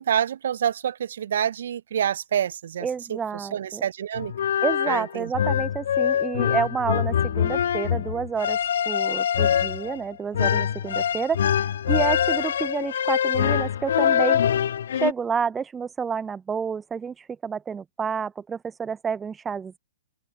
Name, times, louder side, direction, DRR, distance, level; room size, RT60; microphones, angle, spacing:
voice 1, 0.0-4.3 4.9-5.3, right 9 dB, 60° right, 0.6 m, -27 dB
voice 2, 2.8-3.8 4.6-8.6 8.9-11.4 11.9-14.4 15.0-19.8, right 6 dB, 15° right, 0.5 m, -29 dB
sound 1, 4.1-15.1, left 9 dB, 60° left, 2.0 m, -24 dB
open air
figure-of-eight pair, 115°, 0 cm